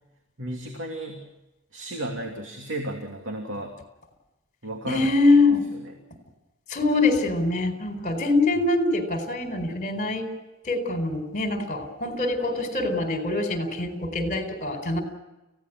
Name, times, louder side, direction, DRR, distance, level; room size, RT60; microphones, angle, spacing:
voice 1, 0.4-1.3 1.7-3.7 4.6-5.1 5.7-5.9, right 1 dB, 60° right, 2 dB, 2.9 m, -33 dB
voice 2, 4.9-5.6 6.7-10.3 10.6-15.0, left 2 dB, 40° left, 6 dB, 4.4 m, -24 dB
29.5 x 17.0 x 6.2 m, 0.99 s
head